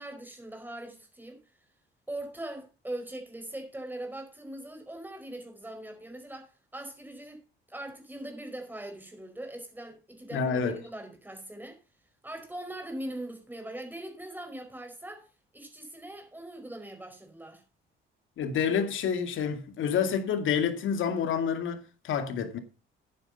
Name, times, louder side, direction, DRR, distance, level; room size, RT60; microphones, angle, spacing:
voice 1, 0.0-1.4 2.1-7.4 7.7-11.8 12.2-15.3 15.5-17.6, right 1 dB, 10° right, 5.0 m, -41 dB
voice 2, 10.3-10.8 18.4-22.6, left 7 dB, 70° left, 2.3 m, -28 dB
10.5 x 9.2 x 5.4 m
cardioid pair, 120°, 21 cm